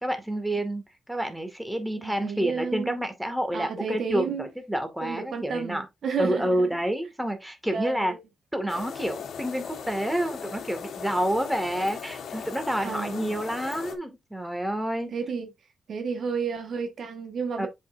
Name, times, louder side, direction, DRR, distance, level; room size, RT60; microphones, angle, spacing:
voice 1, 0.0-5.9 6.2-8.1 8.5-15.1 17.6-17.7, right 1 dB, 5° right, 2.1 m, -29 dB
voice 2, 1.9-3.0 3.5-4.5 5.0-6.8 7.7-8.2 12.8-13.3 15.1-15.5 15.9-17.7, right 5 dB, 65° right, 1.4 m, -31 dB
sound 1, 8.7-14.0, left 7 dB, 80° left, 1.4 m, -38 dB
7.7 x 5.6 x 2.6 m
cardioid pair, 85°, 0 cm